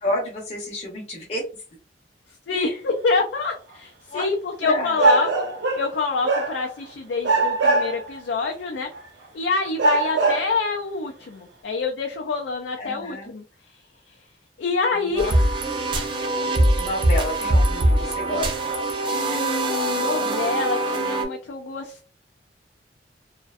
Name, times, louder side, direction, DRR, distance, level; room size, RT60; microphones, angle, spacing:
voice 1, 0.0-1.4 2.5-2.8 4.1-4.3 4.6-5.0 12.8-13.3 14.9-15.3 15.6-16.1 16.4-18.7, left 1 dB, 35° left, -3 dB, 0.6 m, -30 dB
voice 2, 2.5-5.4 5.8-8.9 9.3-13.4 14.6-15.4 19.1-22.1, left 4 dB, 75° left, 2 dB, 0.4 m, -26 dB
sound 1, 3.5-3.6 5.0-6.0 6.2-6.9 7.2-8.2 8.9-9.0 9.8-10.6, right 3 dB, 75° right, 0.7 m, -21 dB
sound 2, 15.2-21.3, right 1 dB, 30° right, 0.4 m, -22 dB
2.5 x 2.1 x 2.3 m, 0.38 s
head